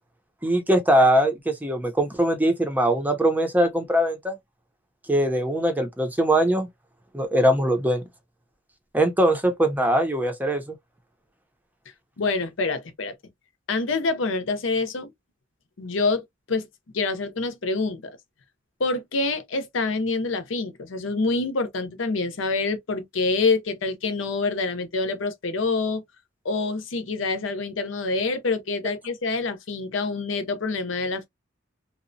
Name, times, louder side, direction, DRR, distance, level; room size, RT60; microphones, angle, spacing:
voice 1, 0.4-4.4 5.1-6.7 7.1-8.0 8.9-10.8, right 1 dB, 10° right, 0.6 m, -21 dB
voice 2, 12.2-13.1 13.7-15.1 15.8-16.2 16.5-16.7 16.9-18.1 18.8-26.0 26.4-31.3, left 3 dB, 75° left, 0.6 m, -26 dB
2.8 x 2.1 x 2.6 m
head